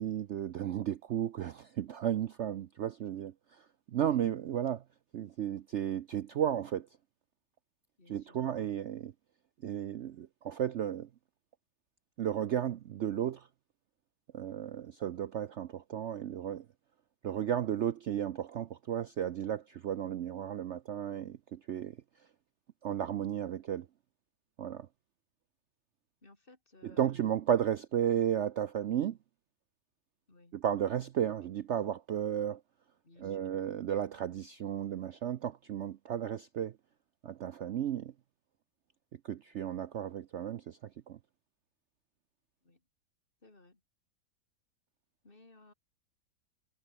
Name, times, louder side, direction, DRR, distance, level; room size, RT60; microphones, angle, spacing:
voice 1, 0.0-4.8 5.1-6.9 8.1-9.1 9.6-11.1 12.2-13.5 14.3-16.6 17.2-22.0 22.8-23.9 24.6-24.9 26.8-29.2 30.5-32.6 33.2-36.7 37.2-38.1 39.2-40.8 41.1-41.2, right 10 dB, 65° right, 0.7 m, -34 dB
voice 2, 8.0-8.4 26.2-27.2 30.3-30.6 33.0-33.5 42.6-42.8 43.4-43.8 45.2-45.7, left 2 dB, 30° left, 3.6 m, -60 dB
omnidirectional pair, 1.8 m